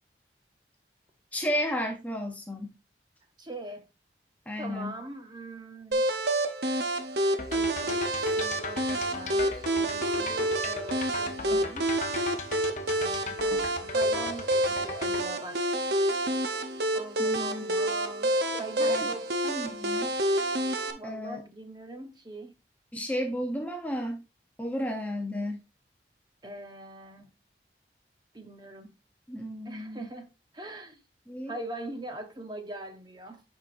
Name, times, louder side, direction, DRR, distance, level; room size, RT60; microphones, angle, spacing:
voice 1, 1.3-2.7 4.5-5.0 17.2-17.7 18.5-19.1 19.4-20.1 21.0-21.4 22.9-24.2 24.6-25.6 29.3-30.1 31.3-31.5, equal, 10° left, 0.6 m, -33 dB
voice 2, 3.4-3.9 4.6-6.0 7.5-11.9 13.0-15.7 16.9-19.3 20.9-22.5 26.4-27.3 28.3-29.0 29.6-31.0 31.5-33.4, right 1 dB, 25° right, 0.9 m, -42 dB
sound 1, 5.9-20.9, right 1 dB, 65° right, 0.8 m, -28 dB
sound 2, 7.4-15.3, left 3 dB, 40° left, 0.8 m, -39 dB
8.7 x 4.8 x 2.6 m
head